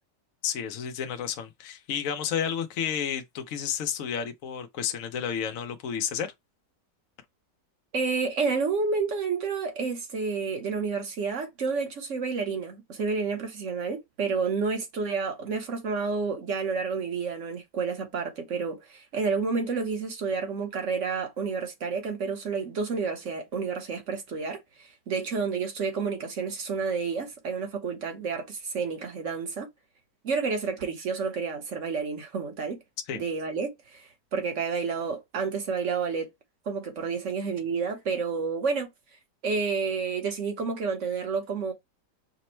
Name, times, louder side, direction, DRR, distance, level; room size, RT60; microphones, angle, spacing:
voice 1, 0.4-6.3 33.1-33.2, left 8 dB, 65° left, 0.8 m, -31 dB
voice 2, 7.9-29.7 30.2-32.8 33.1-36.3 36.7-38.9 39.4-41.7, right 5 dB, 50° right, 1.1 m, -30 dB
5.1 x 2.1 x 4.3 m
omnidirectional pair, 1.9 m